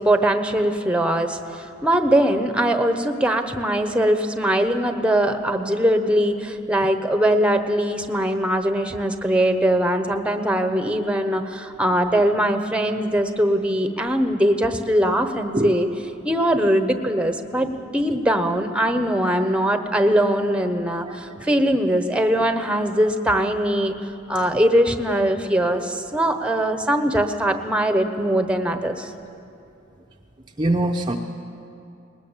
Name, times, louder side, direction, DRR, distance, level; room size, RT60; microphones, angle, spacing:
voice 1, 0.0-15.9 16.2-23.9 24.3-29.1, right 1 dB, 5° right, 7 dB, 1.0 m, -21 dB
voice 2, 30.6-31.2, right 1 dB, 25° right, 1 dB, 0.8 m, -22 dB
20.0 x 20.0 x 7.4 m, 2.7 s
head